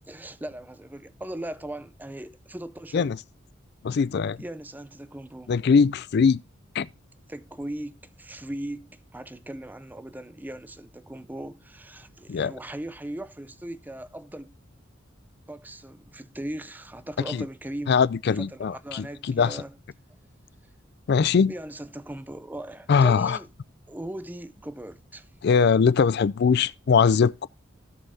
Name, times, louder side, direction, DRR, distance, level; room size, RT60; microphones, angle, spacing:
voice 1, 0.1-3.1 4.4-5.5 7.3-14.5 15.5-18.0 18.3-19.8 21.5-23.5 23.9-25.3, right 1 dB, 10° right, 0.5 m, -38 dB
voice 2, 3.8-4.4 5.5-6.4 6.8-6.9 12.3-12.5 17.3-17.4 17.9-19.6 21.1-21.5 22.9-23.4 25.4-27.5, left 6 dB, 55° left, 0.4 m, -21 dB
16.5 x 5.6 x 2.7 m
head